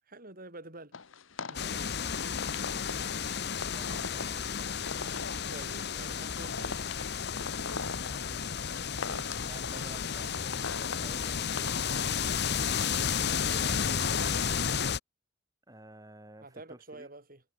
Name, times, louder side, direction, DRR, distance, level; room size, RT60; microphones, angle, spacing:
voice 1, 0.1-0.9 1.4-1.7 2.7-3.2 3.8-4.0 5.5-6.9 9.0-9.3 13.1-14.9 16.4-17.4, right 2 dB, 45° right, 7.1 m, -49 dB
sound 1, 0.9-14.7, left 4 dB, 85° left, 1.4 m, -42 dB
sound 2, 1.5-15.0, left 7 dB, 55° left, 1.0 m, -32 dB
voice 2, 1.6-2.3 2.7-3.3 3.7-5.5 7.9-8.4 8.7-9.0 9.4-12.4 15.7-17.1, right 1 dB, 20° right, 6.5 m, -53 dB
head